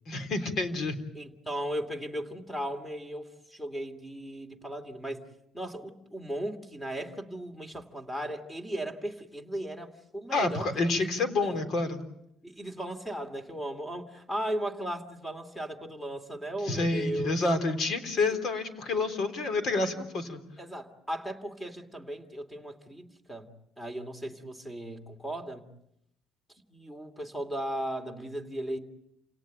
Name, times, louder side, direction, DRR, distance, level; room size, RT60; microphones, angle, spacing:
voice 1, 0.1-1.0 10.3-12.0 16.6-20.4, left 3 dB, 50° left, 8 dB, 3.7 m, -28 dB
voice 2, 1.1-5.2 5.5-10.8 11.4-11.6 12.4-17.4 18.2-18.4 20.6-23.5 23.8-25.7 26.7-28.8, right 1 dB, 5° left, 8 dB, 2.7 m, -36 dB
28.5 x 18.0 x 9.1 m, 0.80 s
cardioid pair, 130°, 0 cm